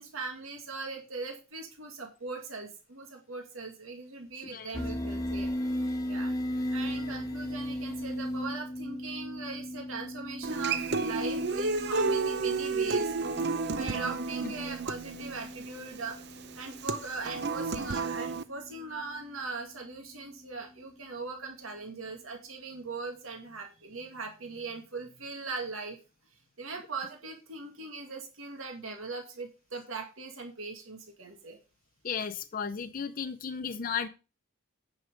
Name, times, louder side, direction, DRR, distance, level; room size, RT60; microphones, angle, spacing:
voice 1, 0.0-5.5 6.1-13.1 13.7-16.2 16.6-26.0 26.6-31.6, right 4 dB, 80° right, 3 dB, 2.1 m, -40 dB
sound 1, 4.7-19.8, left 1 dB, 15° left, 1.3 m, -37 dB
Human voice / Acoustic guitar, 10.4-18.4, right 3 dB, 55° right, 0.7 m, -31 dB
voice 2, 32.0-34.1, left 6 dB, 40° left, 7 dB, 0.6 m, -34 dB
9.5 x 6.3 x 5.1 m, 0.31 s
head